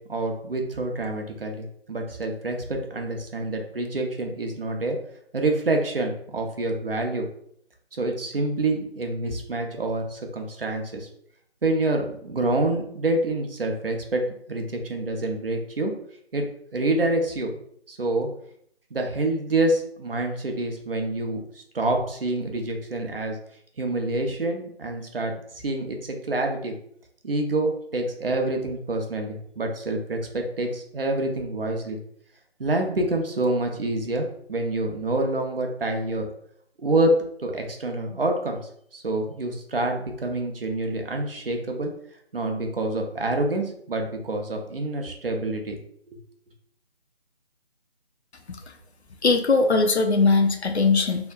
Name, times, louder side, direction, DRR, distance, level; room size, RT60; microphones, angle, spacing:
voice 1, 0.1-5.0 5.3-7.3 8.0-11.1 11.6-14.2 14.5-15.9 16.3-16.5 16.7-17.6 17.9-18.3 18.9-23.4 23.8-25.3 25.6-26.7 27.2-32.0 32.6-36.3 36.8-37.1 37.4-38.6 38.9-41.9 42.3-45.8 46.1-46.2, right 2 dB, 60° right, 3 dB, 1.0 m, -27 dB
voice 2, 49.2-51.3, left 3 dB, 80° left, 5 dB, 0.7 m, -20 dB
4.3 x 3.4 x 2.4 m, 0.65 s
figure-of-eight pair, 155°, 32 cm